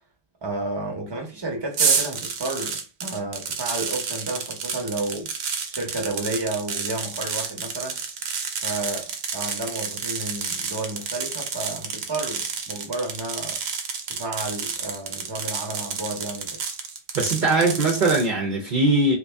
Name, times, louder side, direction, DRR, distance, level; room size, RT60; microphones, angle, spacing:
voice 1, 0.4-5.3 5.7-8.0 8.6-13.6 14.1-16.6, right 2 dB, 25° right, 0.9 m, -31 dB
sound 1, 1.7-18.3, right 5 dB, 90° right, 0.9 m, -30 dB
voice 2, 17.1-19.2, right 2 dB, 55° right, 0.8 m, -20 dB
3.0 x 2.6 x 3.4 m
omnidirectional pair, 1.0 m